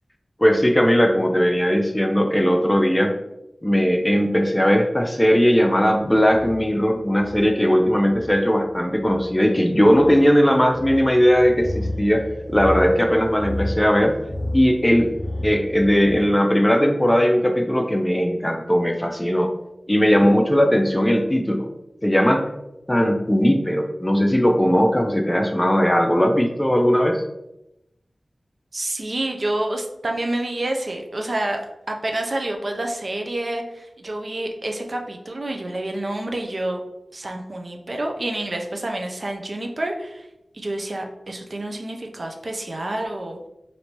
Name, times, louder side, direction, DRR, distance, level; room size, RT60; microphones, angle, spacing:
voice 1, 0.4-3.1 3.6-12.3 12.5-14.1 14.5-15.1 15.4-19.5 19.9-21.7 22.0-22.5 22.9-27.2, equal, 15° left, 4 dB, 0.4 m, -18 dB
sound 1, 6.0-16.1, left 1 dB, 10° right, 1.1 m, -32 dB
voice 2, 28.7-31.6 31.9-36.8 37.1-40.3 40.5-43.5, right 1 dB, 55° right, 3 dB, 0.4 m, -28 dB
3.2 x 2.6 x 2.9 m, 0.88 s
wide cardioid pair, 55°, 0 cm